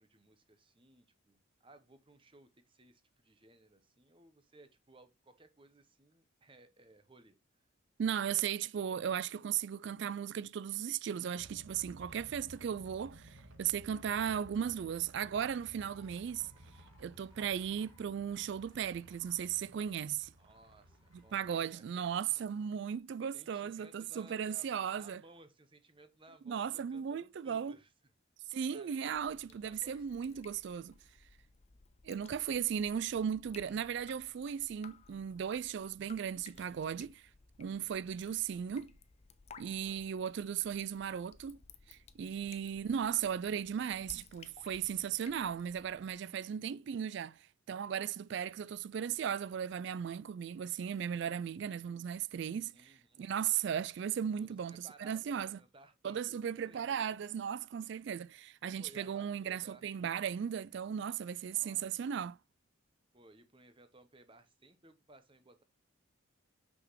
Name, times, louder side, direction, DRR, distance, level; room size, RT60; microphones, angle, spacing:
voice 1, 0.0-7.7 12.0-12.4 20.4-22.4 23.3-24.7 24.9-27.9 28.7-30.5 36.5-36.8 39.8-40.1 42.4-42.9 46.3-46.6 52.7-53.2 54.4-57.0 57.8-58.0 58.8-59.8 61.0-61.1 61.5-61.9 63.1-65.6, right 2 dB, 25° right, 0.9 m, -61 dB
voice 2, 8.0-16.5 17.0-20.3 21.1-25.2 26.5-27.8 28.5-31.0 32.0-37.2 37.6-38.9 39.6-41.6 41.9-47.4 47.7-52.7 53.2-55.6 56.0-62.4, right 8 dB, 60° right, 0.3 m, -36 dB
sound 1, 11.4-21.6, right 1 dB, 90° right, 1.7 m, -57 dB
sound 2, 15.7-23.0, left 1 dB, 15° left, 2.0 m, -69 dB
Drip, 29.1-46.1, left 5 dB, 30° left, 0.6 m, -58 dB
6.0 x 5.9 x 3.1 m
head